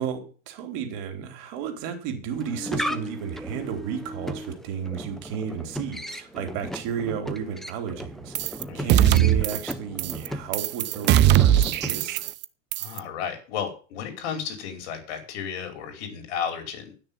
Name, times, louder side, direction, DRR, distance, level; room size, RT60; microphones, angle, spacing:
voice 1, 0.0-12.3, right 7 dB, 55° right, 6 dB, 3.4 m, -33 dB
sound 1, 2.3-12.3, equal, ahead, 0.9 m, -36 dB
sound 2, 8.4-8.6 8.9-9.7 10.0-10.3 10.5-12.5 12.7-13.0, right 12 dB, 30° right, 0.6 m, -20 dB
voice 2, 12.8-16.9, left 7 dB, 60° left, 5 dB, 5.1 m, -33 dB
11.0 x 6.6 x 9.2 m, 0.38 s
supercardioid pair, 125°, 36 cm